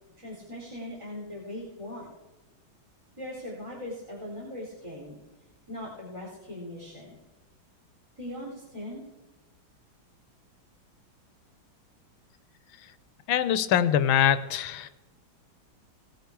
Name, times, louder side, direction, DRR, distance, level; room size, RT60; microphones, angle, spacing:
voice 1, 0.2-2.1 3.2-5.2 5.7-7.2 8.2-9.0, left 1 dB, 15° right, -7 dB, 3.8 m, -40 dB
voice 2, 13.3-14.9, left 9 dB, 80° left, 13 dB, 1.5 m, -23 dB
18.5 x 8.0 x 4.7 m, 1.1 s
omnidirectional pair, 2.2 m